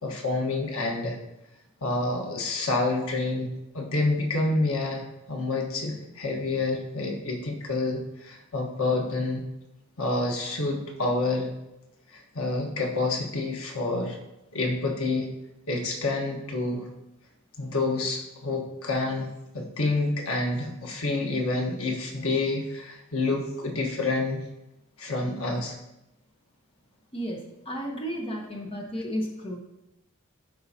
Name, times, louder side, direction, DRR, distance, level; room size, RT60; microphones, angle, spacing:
voice 1, 0.0-1.2 1.8-9.4 10.0-11.5 12.1-14.2 14.5-15.3 15.7-16.9 17.6-19.3 19.5-24.4 25.0-25.7, left 2 dB, 90° left, 1 dB, 1.4 m, -28 dB
voice 2, 27.1-29.6, equal, 25° left, 0 dB, 1.1 m, -33 dB
12.0 x 4.7 x 2.8 m, 0.91 s
head